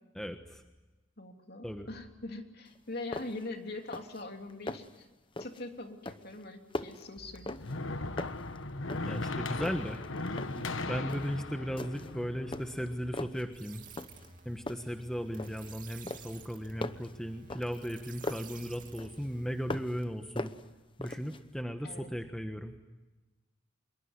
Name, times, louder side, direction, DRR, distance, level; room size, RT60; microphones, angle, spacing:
voice 1, 0.2-0.6 1.6-1.9 9.0-10.0 10.5-13.8 14.4-20.5 21.0-22.7, equal, 5° left, 5 dB, 1.3 m, -36 dB
voice 2, 1.2-5.1 5.4-7.6 21.8-22.1, left 2 dB, 50° left, 4 dB, 3.2 m, -42 dB
sound 1, 2.7-2.8 3.1-3.5 3.8-4.2 4.5-5.0 5.4-5.7 6.0-7.9 8.2-9.2 9.6-10.7 11.1-11.4 11.8-12.2 12.5-13.5 14.0-14.4 14.7-15.7 16.1-18.6 19.0-20.0 20.4-21.4, left 2 dB, 25° left, 0.9 m, -41 dB
sound 2, 7.2-13.3, left 2 dB, 80° left, 1.5 m, -38 dB
sound 3, 13.5-19.9, right 5 dB, 40° right, 2.8 m, -53 dB
26.5 x 22.0 x 9.8 m, 1.2 s
head